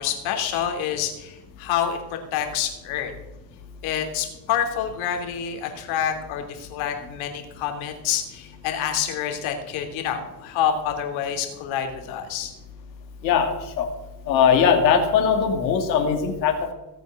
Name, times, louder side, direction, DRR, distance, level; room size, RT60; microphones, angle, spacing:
voice 1, 0.0-2.0 2.3-3.1 3.8-12.5, left 9 dB, 70° left, 4 dB, 3.1 m, -27 dB
voice 2, 13.2-13.9 14.3-16.7, left 7 dB, 85° left, 4 dB, 2.2 m, -20 dB
17.5 x 8.1 x 6.4 m, 0.99 s
hypercardioid pair, 60°, 50 cm